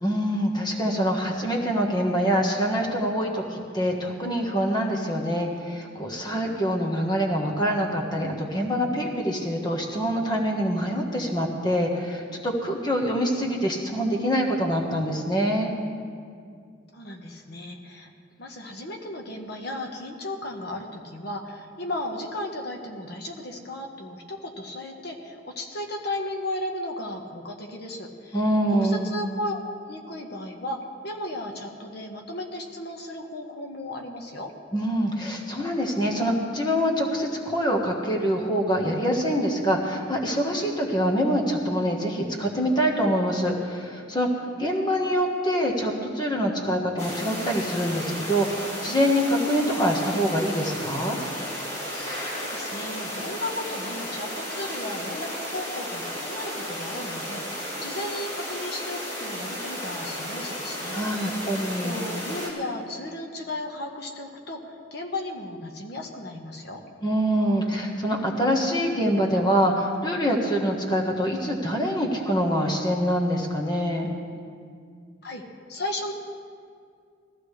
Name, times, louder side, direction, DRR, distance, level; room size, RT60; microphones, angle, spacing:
voice 1, 0.0-15.7 28.3-29.1 34.7-51.2 60.9-62.0 67.0-74.1, equal, 25° left, 0 dB, 1.4 m, -25 dB
voice 2, 16.9-18.1 18.4-28.4 28.8-29.6 29.9-34.5 52.3-61.5 61.8-66.8 75.2-75.4 75.7-76.1, left 1 dB, 60° left, 2 dB, 1.3 m, -35 dB
sound 1, 47.0-62.5, equal, 40° left, 4.2 m, -34 dB
20.5 x 14.5 x 3.3 m, 2.2 s
head